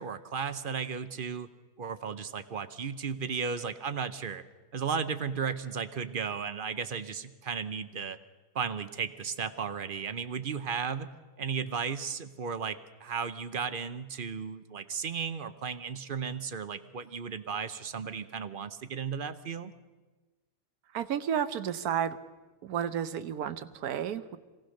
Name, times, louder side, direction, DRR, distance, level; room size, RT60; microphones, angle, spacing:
voice 1, 0.0-1.5 1.8-4.4 4.7-8.2 8.5-19.7, right 6 dB, 45° right, 12 dB, 0.8 m, -35 dB
voice 2, 20.9-22.2 22.6-24.4, right 9 dB, 75° right, 13 dB, 1.3 m, -32 dB
23.5 x 17.5 x 6.5 m, 1.3 s
omnidirectional pair, 1.6 m